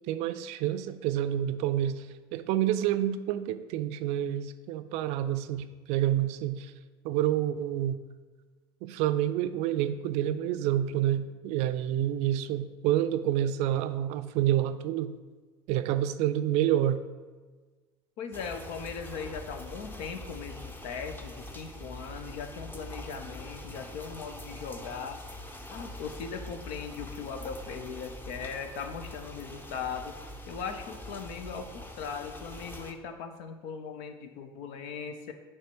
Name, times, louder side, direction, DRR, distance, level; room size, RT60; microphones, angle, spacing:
voice 1, 0.1-2.1 2.3-6.7 7.0-8.0 8.8-15.1 15.7-17.0, right 11 dB, 60° right, 11 dB, 0.4 m, -28 dB
voice 2, 18.2-25.2 25.7-30.2 30.5-35.3, left 6 dB, 65° left, 8 dB, 0.8 m, -39 dB
sound 1, 18.3-32.9, left 1 dB, 15° left, 0.9 m, -44 dB
7.2 x 3.3 x 6.1 m, 1.4 s
hypercardioid pair, 75°, 13 cm